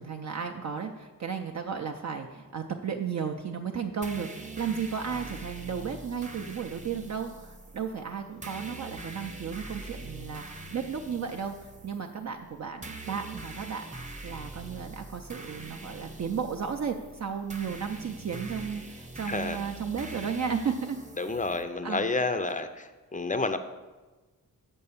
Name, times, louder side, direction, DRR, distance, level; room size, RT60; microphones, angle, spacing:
voice 1, 0.0-21.0 21.8-22.1, right 6 dB, 50° right, 3 dB, 0.5 m, -34 dB
sound 1, 4.0-21.6, right 2 dB, 20° right, 0.9 m, -44 dB
voice 2, 19.3-19.6 21.2-23.6, left 3 dB, 25° left, 9 dB, 0.5 m, -30 dB
6.6 x 5.4 x 7.0 m, 1.2 s
wide cardioid pair, 130°, 35 cm